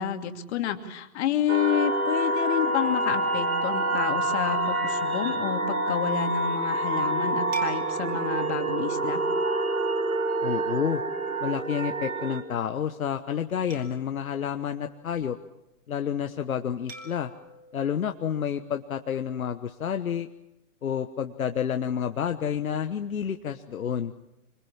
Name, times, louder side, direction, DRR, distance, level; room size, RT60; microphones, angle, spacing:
voice 1, 0.0-9.2, left 10 dB, 50° left, 6 dB, 2.9 m, -29 dB
sound 1, 1.5-12.4, right 2 dB, 85° right, 2.7 m, -27 dB
sound 2, 7.5-10.2 10.8-11.0 13.7-15.5 16.9-19.2, right 1 dB, 20° right, 5.1 m, -47 dB
voice 2, 10.4-11.0 11.4-15.4 15.9-17.3 17.7-20.3 20.8-24.1, left 8 dB, 75° left, 6 dB, 1.4 m, -29 dB
26.0 x 25.0 x 7.3 m, 0.90 s
hypercardioid pair, 120°, 42 cm